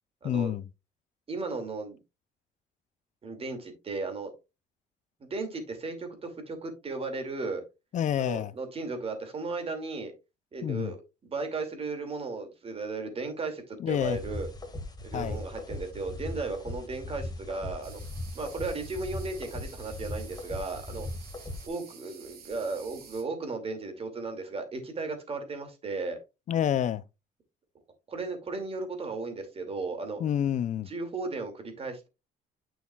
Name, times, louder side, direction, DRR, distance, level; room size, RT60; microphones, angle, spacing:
voice 1, 0.2-0.6 7.9-8.5 10.6-10.9 13.8-14.2 15.1-15.4 26.5-27.0 30.2-30.9, left 10 dB, 45° left, 0.5 m, -28 dB
voice 2, 1.3-2.0 3.2-4.3 5.2-7.6 8.2-10.1 10.5-11.0 11.2-14.5 15.0-18.0 18.3-21.1 21.6-26.2 28.1-30.2 30.9-32.1, right 3 dB, 35° right, 2.4 m, -35 dB
sound 1, 14.0-21.7, left 2 dB, 25° left, 1.8 m, -39 dB
sound 2, 17.8-23.2, right 7 dB, 65° right, 2.7 m, -51 dB
9.2 x 6.3 x 2.3 m
cardioid pair, 110°, 17 cm